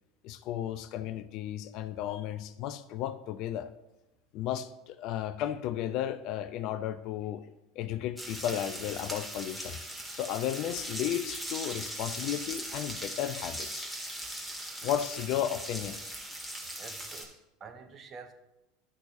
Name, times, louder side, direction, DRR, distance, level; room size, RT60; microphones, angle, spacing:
voice 1, 0.2-3.7 4.3-7.4 7.8-9.8 10.1-13.9 14.8-16.0, left 11 dB, 55° left, 12 dB, 0.5 m, -34 dB
sound 1, 8.2-17.3, right 1 dB, 5° right, 1.7 m, -39 dB
voice 2, 16.8-18.3, right 5 dB, 35° right, 7 dB, 1.0 m, -48 dB
11.5 x 6.1 x 2.7 m, 0.92 s
hypercardioid pair, 80°, 0 cm